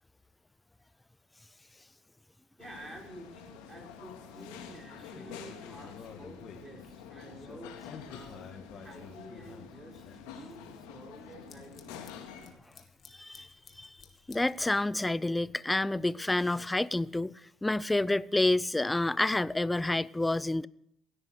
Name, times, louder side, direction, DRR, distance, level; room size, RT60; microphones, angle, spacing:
sound 1, 2.6-12.5, left 7 dB, 90° left, 2.2 m, -48 dB
voice 1, 2.6-7.8 8.0-8.4 8.7-12.2 13.5-13.6, right 1 dB, 20° right, 5.5 m, -50 dB
sound 2, 5.1-7.0 7.3-10.6 11.3-14.7, left 6 dB, 50° left, 2.4 m, -52 dB
voice 2, 14.3-20.7, left 2 dB, 10° left, 0.5 m, -29 dB
17.0 x 9.9 x 6.5 m
supercardioid pair, 85°, 0 cm